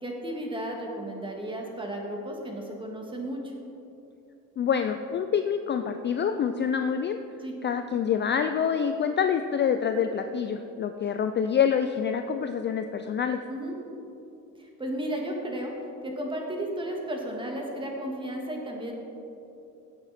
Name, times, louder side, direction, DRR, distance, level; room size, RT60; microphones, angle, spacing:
voice 1, 0.0-3.5 7.4-7.5 13.5-13.8 14.6-15.7 16.0-18.9, right 1 dB, 15° right, 0 dB, 2.0 m, -34 dB
voice 2, 4.6-7.2 7.6-13.4, left 7 dB, 30° left, 7 dB, 0.4 m, -26 dB
17.0 x 7.8 x 4.2 m, 2.9 s
cardioid pair, 125°, 35 cm